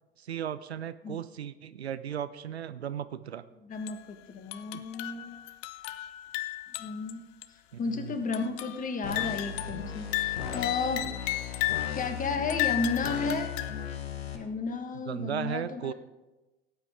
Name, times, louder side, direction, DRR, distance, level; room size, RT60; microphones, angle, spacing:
voice 1, 0.2-3.4 4.7-4.8 7.7-8.2 15.1-15.9, right 9 dB, 85° right, 14 dB, 0.5 m, -36 dB
voice 2, 3.6-5.3 6.8-7.3 7.8-11.1 11.9-13.5 14.3-15.9, left 4 dB, 25° left, 7 dB, 1.4 m, -33 dB
sound 1, 3.7-4.0 4.5-7.1 7.4-7.5 8.3-8.8 9.1-12.0 12.5-13.9, left 16 dB, 45° left, 0.6 m, -34 dB
sound 2, 9.0-14.4, left 7 dB, 70° left, 1.3 m, -37 dB
17.5 x 8.1 x 3.6 m, 1.1 s
figure-of-eight pair, 75°, 31 cm